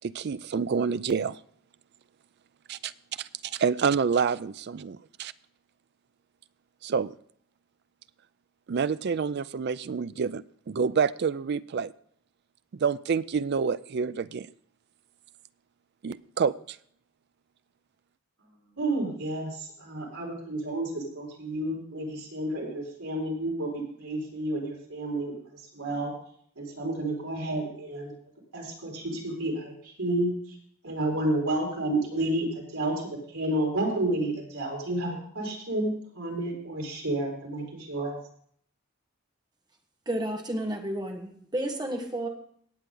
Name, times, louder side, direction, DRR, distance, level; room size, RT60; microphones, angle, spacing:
voice 1, 0.0-1.4 2.7-2.9 3.2-5.3 6.8-7.1 8.7-11.9 12.7-14.5 16.0-16.8, right 6 dB, 50° right, 16 dB, 0.4 m, -28 dB
voice 2, 18.8-25.4 25.7-26.1 26.6-28.1 28.5-30.3 30.8-38.2, right 1 dB, 80° right, -2 dB, 4.8 m, -30 dB
voice 3, 40.1-42.3, right 1 dB, 20° right, 3 dB, 1.5 m, -31 dB
18.5 x 8.1 x 3.8 m, 0.63 s
head